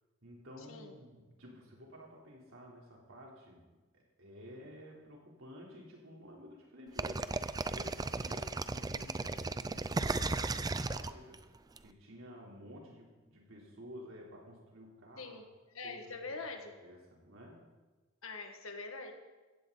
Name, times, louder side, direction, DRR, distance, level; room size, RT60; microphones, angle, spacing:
voice 1, 0.2-7.3 7.7-11.4 11.8-15.4 15.8-16.4 16.8-17.6, equal, 70° right, -2 dB, 3.9 m, -52 dB
sound 1, 7.0-11.8, right 3 dB, 20° right, 0.4 m, -35 dB
voice 2, 15.7-16.7 18.2-19.1, left 3 dB, 85° left, 4 dB, 1.9 m, -43 dB
16.0 x 15.5 x 4.1 m, 1.2 s
head